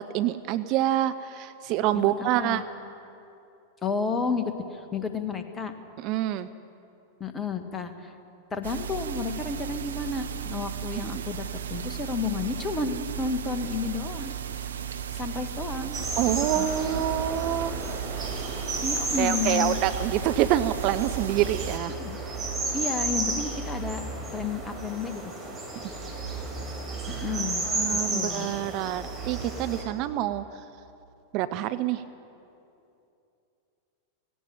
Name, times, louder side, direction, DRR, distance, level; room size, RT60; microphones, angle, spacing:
voice 1, 0.0-2.6 6.0-6.5 16.2-17.7 18.1-18.2 18.9-22.0 27.3-30.4 31.3-32.0, right 12 dB, 40° right, 12 dB, 0.7 m, -27 dB
voice 2, 2.2-2.6 3.8-5.7 7.2-8.1 8.5-14.7 15.1-16.0 16.6-16.7 18.8-19.8 21.9-22.5 22.7-24.0 24.3-25.3 27.1-28.5, left 4 dB, 20° left, 8 dB, 1.7 m, -32 dB
sound 1, 8.6-21.8, right 9 dB, 65° right, 0.9 m, -35 dB
sound 2, 15.9-29.8, right 2 dB, 15° right, 6.5 m, -32 dB
17.5 x 17.5 x 9.1 m, 2.7 s
figure-of-eight pair, 90°, 0 cm